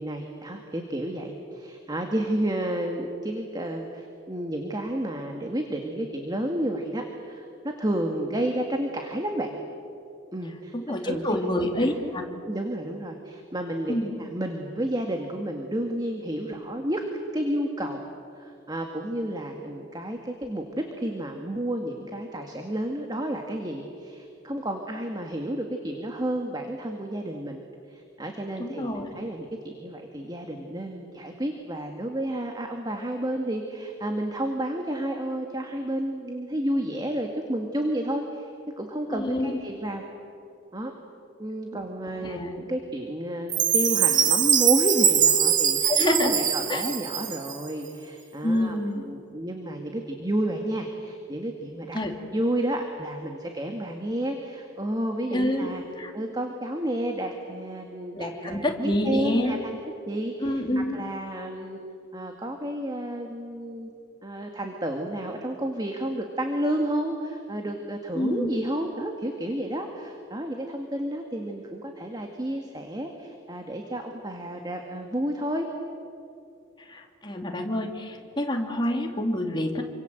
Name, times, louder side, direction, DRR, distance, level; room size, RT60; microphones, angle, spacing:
voice 1, 0.0-7.5 7.8-9.6 10.3-10.7 11.0-12.2 12.5-17.0 17.3-18.0 18.3-27.6 27.9-38.5 38.8-40.0 40.7-40.9 41.4-52.0 52.3-55.8 56.1-59.8 60.1-60.6 60.9-61.8 62.1-63.9 64.2-75.7, right 1 dB, 20° right, 3 dB, 2.0 m, -31 dB
voice 2, 10.7-12.2 13.9-14.1 28.6-29.1 39.1-39.6 42.2-42.5 45.8-46.4 46.7-46.8 48.4-49.0 51.9-52.1 55.3-55.7 56.0-56.1 58.1-59.6 60.4-61.0 68.1-68.5 76.9-79.8, left 1 dB, 25° left, 2 dB, 3.1 m, -27 dB
Chime, 43.5-47.7, right 8 dB, 45° right, 1.8 m, -22 dB
28.0 x 25.5 x 8.0 m, 2.6 s
head